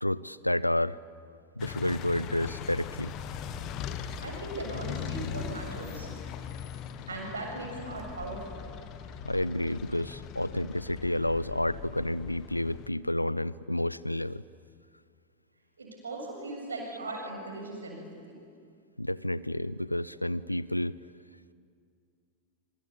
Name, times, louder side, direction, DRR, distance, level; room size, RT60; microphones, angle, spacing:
voice 1, 0.0-1.0 1.6-3.1 9.2-14.4 19.0-21.0, left 1 dB, 85° left, 20 dB, 0.6 m, -30 dB
sound 1, 1.6-12.9, left 8 dB, 35° left, 1.7 m, -40 dB
voice 2, 4.2-6.1 7.1-8.7 15.8-18.4, right 2 dB, 75° right, 1 dB, 7.3 m, -38 dB
26.5 x 24.5 x 8.6 m, 2.3 s
figure-of-eight pair, 90°, 0 cm